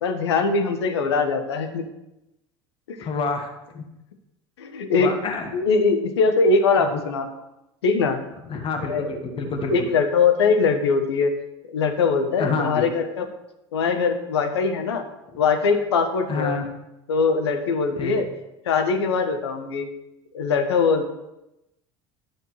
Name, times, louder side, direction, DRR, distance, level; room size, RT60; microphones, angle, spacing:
voice 1, 0.0-1.9 2.9-3.1 4.6-5.1 5.5-7.3 7.8-8.2 8.9-9.4 9.7-11.3 11.7-13.3 13.7-15.0 15.4-16.6 17.1-18.3 18.6-19.9 20.3-21.1, left 4 dB, 80° left, 7 dB, 1.1 m, -22 dB
voice 2, 3.0-3.8 5.0-5.5 6.8-6.9 8.5-9.9 12.4-12.8 16.3-16.7 18.0-18.2, left 4 dB, 40° left, 3 dB, 1.5 m, -28 dB
11.5 x 6.6 x 3.2 m, 0.92 s
hypercardioid pair, 75°, 14 cm